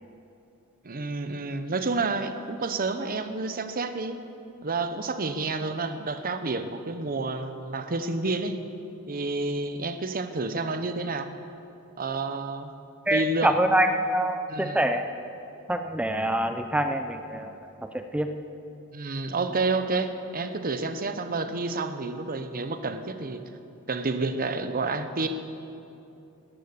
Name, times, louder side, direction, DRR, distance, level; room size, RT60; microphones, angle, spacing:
voice 1, 0.8-4.2 4.6-8.6 9.1-11.3 12.0-12.7 13.1-13.5 14.5-14.8 18.9-23.4 23.9-25.3, right 3 dB, 40° right, 9 dB, 0.9 m, -29 dB
voice 2, 13.1-15.1 15.7-18.3, right 1 dB, 5° right, 7 dB, 0.6 m, -25 dB
18.5 x 11.0 x 6.8 m, 2.8 s
head